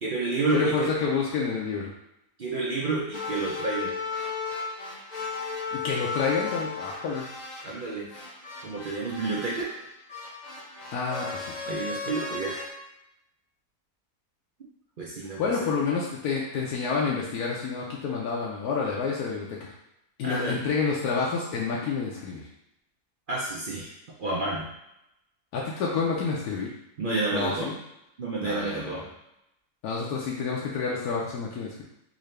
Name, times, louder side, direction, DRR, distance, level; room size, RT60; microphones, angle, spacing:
voice 1, 0.0-0.9 2.4-3.9 7.6-8.1 8.6-9.7 11.7-12.6 15.0-15.4 20.2-20.6 23.3-23.9 24.2-24.7 27.0-27.7 28.2-29.1, right 3 dB, 55° right, -4 dB, 0.6 m, -29 dB
voice 2, 0.5-1.9 5.7-7.3 10.9-11.5 15.4-19.7 20.2-22.4 25.5-26.7 27.3-27.7 28.4-29.0 29.8-31.8, left 5 dB, 80° left, -3 dB, 1.1 m, -29 dB
sound 1, 3.1-12.7, left 4 dB, 55° left, 0.5 m, -35 dB
3.7 x 2.7 x 3.2 m, 0.83 s
omnidirectional pair, 1.6 m